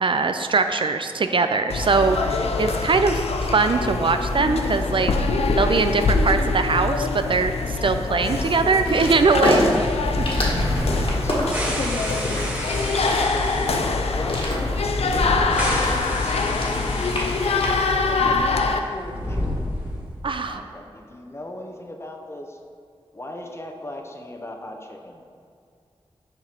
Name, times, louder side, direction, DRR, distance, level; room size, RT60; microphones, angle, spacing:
voice 1, 0.0-5.1 5.6-10.3 20.2-20.6, right 4 dB, 55° right, 8 dB, 0.4 m, -22 dB
sound 1, 1.7-18.8, left 3 dB, 85° left, 0.4 m, -24 dB
sound 2, 8.3-17.9, left 1 dB, 60° left, 1.5 m, -28 dB
sound 3, 9.7-17.9 18.1-18.2 18.9-20.2, equal, 15° right, 1.5 m, -29 dB
voice 2, 10.6-12.3 13.1-14.4 15.1-15.7 16.2-19.8 20.2-22.6 23.1-25.2, left 1 dB, 25° left, 2 dB, 0.8 m, -39 dB
5.9 x 5.0 x 4.4 m, 2.4 s
wide cardioid pair, 60°, 10 cm